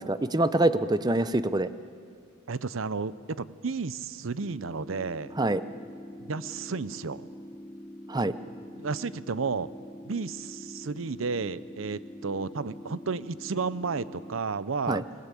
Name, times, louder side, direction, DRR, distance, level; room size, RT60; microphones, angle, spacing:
voice 1, 0.0-1.7 5.4-5.6 8.1-8.4 14.9-15.0, right 2 dB, 20° right, 13 dB, 0.7 m, -25 dB
voice 2, 2.5-5.3 6.2-7.3 8.8-9.7 10.0-15.0, right 4 dB, 75° right, 16 dB, 0.7 m, -32 dB
sound 1, 4.4-14.4, left 1 dB, 15° left, 0.7 m, -45 dB
28.0 x 18.0 x 8.4 m, 2.3 s
head